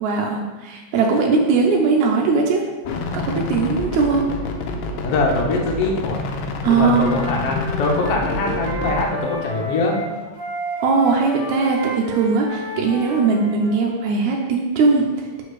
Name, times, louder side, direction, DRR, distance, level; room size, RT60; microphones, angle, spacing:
voice 1, 0.0-2.6 3.1-4.3 6.6-7.2 10.8-15.4, right 4 dB, 80° right, -1 dB, 1.8 m, -19 dB
sound 1, 2.8-9.1, left 3 dB, 90° left, 1.6 m, -28 dB
voice 2, 5.0-6.2 6.6-10.0, left 2 dB, 65° left, -1 dB, 1.5 m, -22 dB
Wind instrument woodwind instrument, 6.9-13.8, right 1 dB, 35° right, 1.2 m, -31 dB
6.3 x 4.9 x 3.2 m, 1.2 s
omnidirectional pair, 3.8 m